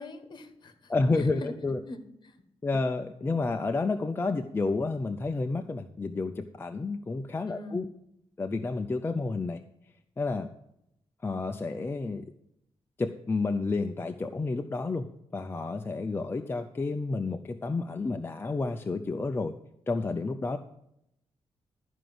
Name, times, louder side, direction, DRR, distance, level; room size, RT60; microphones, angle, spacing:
voice 1, 0.0-1.5 1.8-2.4 7.5-7.9, left 2 dB, 45° left, 10 dB, 1.4 m, -43 dB
voice 2, 0.9-1.8 2.6-7.9 8.4-9.6 10.2-10.5 11.2-12.2 13.0-15.0 15.3-19.5 19.9-20.6, left 3 dB, 20° left, 5 dB, 0.5 m, -30 dB
13.0 x 5.1 x 7.8 m, 0.79 s
wide cardioid pair, 135°, 10 cm